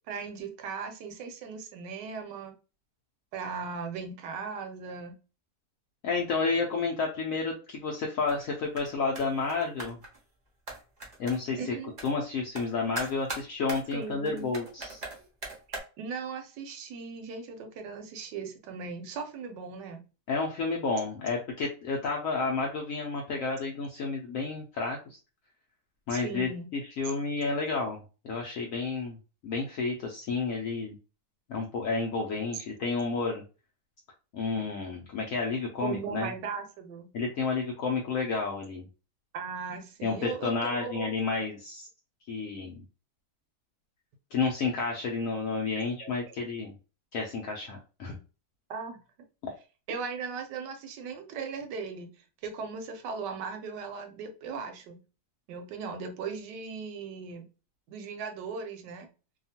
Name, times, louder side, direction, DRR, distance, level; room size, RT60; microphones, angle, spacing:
voice 1, 0.1-2.5 3.3-5.2 11.6-11.9 13.9-14.5 15.2-15.3 15.7-20.0 26.1-26.7 35.8-37.1 39.3-41.1 45.7-46.1 48.7-49.0 49.9-52.1 52.4-55.0 55.5-57.5 57.9-59.1, right 5 dB, 80° right, 5 dB, 1.2 m, -38 dB
voice 2, 6.0-10.0 11.2-11.8 12.0-15.0 20.3-25.2 26.1-28.0 28.2-29.2 29.4-30.9 31.5-33.4 34.3-36.3 37.1-38.8 40.0-41.9 42.3-42.8 44.3-46.7 47.1-48.2 49.4-49.5, left 4 dB, 75° left, 0 dB, 0.7 m, -31 dB
sound 1, 8.3-8.5 8.7-8.9 9.2-10.2 10.7-11.6 12.0-12.1 12.5-12.7 13.0-15.8, right 2 dB, 50° right, 0.5 m, -39 dB
2.8 x 2.3 x 2.7 m, 0.33 s
omnidirectional pair, 1.9 m